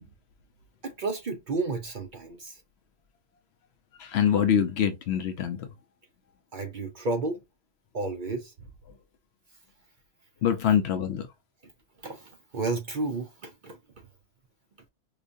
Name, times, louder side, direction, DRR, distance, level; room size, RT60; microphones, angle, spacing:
voice 1, 0.8-2.6 6.5-7.4 7.9-8.7 12.0-13.8, right 3 dB, 55° right, 0.6 m, -32 dB
voice 2, 4.0-5.7 10.4-11.3, left 9 dB, 65° left, 0.8 m, -24 dB
4.9 x 2.3 x 2.5 m
omnidirectional pair, 1.3 m